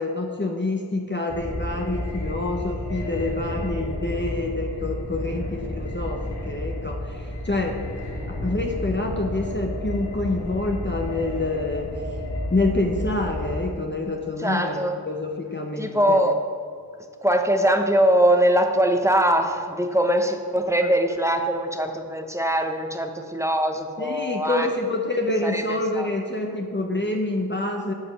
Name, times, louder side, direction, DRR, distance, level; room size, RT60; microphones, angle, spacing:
voice 1, 0.0-7.9 8.3-11.9 12.5-16.3 24.0-27.9, left 2 dB, 25° left, 1 dB, 0.9 m, -27 dB
sound 1, 1.3-13.6, left 1 dB, 75° left, 2.8 m, -31 dB
voice 2, 14.4-14.9 15.8-16.4 17.2-24.7 25.4-25.6 26.0-26.1, right 1 dB, 5° right, 5 dB, 0.9 m, -22 dB
9.7 x 5.1 x 7.2 m, 2.3 s
wide cardioid pair, 40°, 41 cm